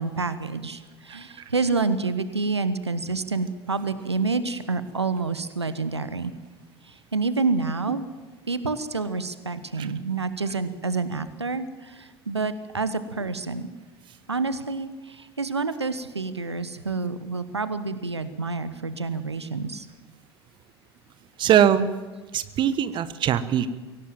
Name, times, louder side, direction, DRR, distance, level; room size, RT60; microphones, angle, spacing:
voice 1, 0.0-6.3 6.8-8.1 8.5-13.7 14.3-19.9, right 4 dB, 85° right, 13 dB, 1.1 m, -28 dB
voice 2, 21.4-21.9 22.3-23.7, right 9 dB, 35° right, 14 dB, 1.2 m, -21 dB
24.0 x 17.5 x 7.6 m, 1.3 s
figure-of-eight pair, 75°, 14 cm